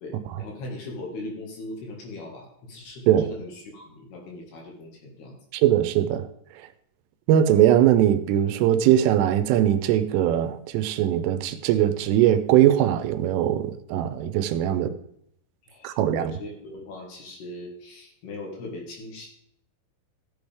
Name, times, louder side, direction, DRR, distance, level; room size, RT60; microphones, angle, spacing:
voice 1, 0.0-5.4 15.6-19.3, left 2 dB, 60° left, 3.4 m, -39 dB
voice 2, 5.5-6.3 7.3-14.9 15.8-16.4, right 11 dB, 85° right, 3.2 m, -21 dB
15.0 x 8.0 x 3.5 m
omnidirectional pair, 5.7 m